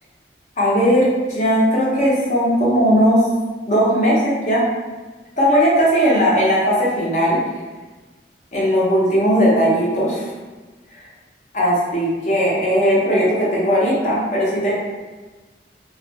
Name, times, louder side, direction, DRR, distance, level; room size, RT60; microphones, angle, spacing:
voice 1, 0.6-3.2 3.7-4.6 5.4-7.4 8.5-10.3 11.5-14.7, equal, 40° left, -6 dB, 0.7 m, -17 dB
2.4 x 2.1 x 2.7 m, 1.3 s
head